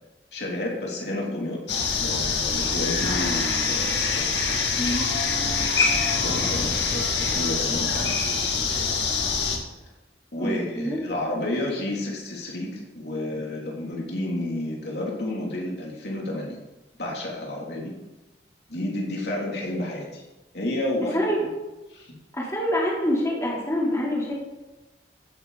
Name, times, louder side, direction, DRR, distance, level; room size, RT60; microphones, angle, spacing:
voice 1, 0.3-1.6 2.0-4.1 6.2-8.2 10.3-16.6 17.0-17.9 18.7-20.2 20.5-21.2 21.9-22.1, left 1 dB, 70° left, -2 dB, 3.0 m, -30 dB
sound 1, 1.7-9.6, left 4 dB, 90° left, 2.3 m, -24 dB
voice 2, 10.4-11.0 21.1-21.4 22.3-24.4, equal, 15° left, -5 dB, 3.5 m, -26 dB
15.5 x 9.7 x 4.1 m, 1.1 s
head